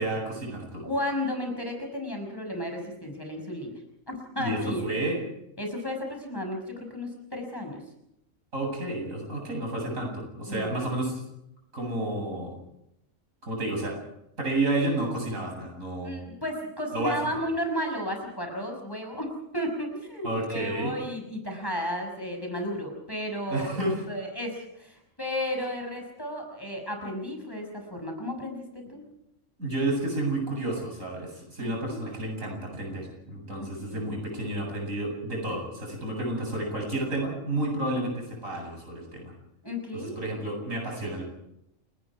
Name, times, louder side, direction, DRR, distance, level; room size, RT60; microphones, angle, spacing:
voice 1, 0.0-0.9 4.4-5.2 8.5-11.2 11.7-12.6 13.4-14.0 14.4-16.2 16.9-17.2 20.2-20.9 23.5-24.0 29.6-39.3 39.9-41.2, right 2 dB, 85° right, 1 dB, 8.6 m, -31 dB
voice 2, 0.8-3.7 4.1-4.8 5.6-7.8 10.5-10.9 16.0-23.7 24.1-29.0 31.6-32.0 33.6-34.0 39.6-40.2, left 1 dB, 15° left, 3 dB, 6.0 m, -33 dB
29.5 x 19.5 x 4.8 m, 0.79 s
omnidirectional pair, 1.3 m